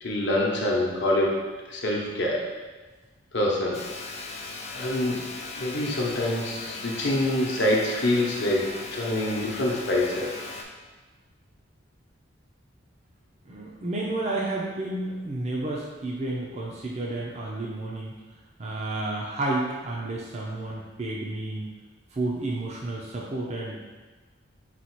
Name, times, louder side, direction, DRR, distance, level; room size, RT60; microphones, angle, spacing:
voice 1, 0.0-1.4 1.7-2.5 3.3-4.2 4.7-5.3 5.6-10.3, left 1 dB, 60° left, -2 dB, 0.8 m, -26 dB
sound 1, 3.7-10.6, left 3 dB, 30° left, 0.4 m, -38 dB
voice 2, 13.5-18.2 18.6-21.7 22.1-23.7, right 2 dB, 35° right, -4 dB, 0.5 m, -31 dB
4.1 x 2.4 x 4.4 m, 1.3 s
head